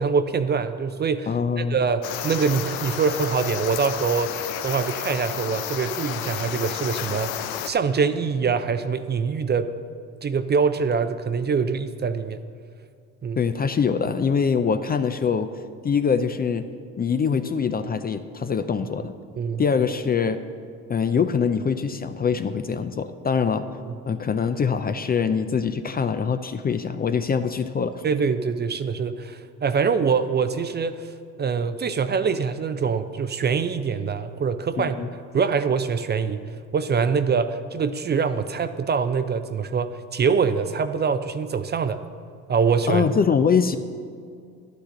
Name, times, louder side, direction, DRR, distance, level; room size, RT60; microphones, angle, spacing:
voice 1, 0.0-1.3 1.6-4.3 4.6-9.7 10.2-12.4 13.2-13.4 19.4-19.6 23.8-23.9 28.0-31.1 31.4-35.0 35.3-36.4 36.7-42.0 42.5-43.1, right 5 dB, 30° right, 11 dB, 0.5 m, -24 dB
voice 2, 1.3-1.8 13.4-15.5 15.8-16.7 17.0-19.1 19.6-20.4 20.9-23.6 24.1-28.0 34.8-35.1 42.9-43.8, left 6 dB, 25° left, 10 dB, 0.4 m, -23 dB
sound 1, 2.0-7.7, left 10 dB, 75° left, 0.7 m, -31 dB
11.5 x 9.0 x 3.8 m, 2.2 s
supercardioid pair, 70°, 36 cm